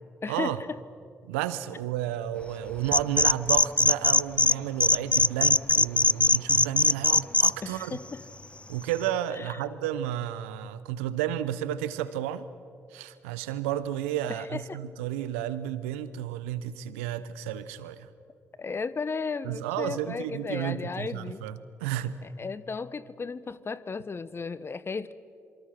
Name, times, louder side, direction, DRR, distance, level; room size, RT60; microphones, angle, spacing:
voice 1, 0.2-0.8 7.6-8.2 9.3-9.6 14.3-14.8 18.6-21.4 22.2-25.1, left 4 dB, 35° left, 16 dB, 1.1 m, -35 dB
voice 2, 1.3-8.0 8.7-12.5 12.9-18.1 19.4-22.3, right 11 dB, 80° right, 14 dB, 0.9 m, -32 dB
sound 1, 2.9-4.5 4.8-7.5, left 2 dB, 15° left, 0.5 m, -20 dB
26.5 x 24.0 x 6.0 m, 2.4 s
hypercardioid pair, 45°, 7 cm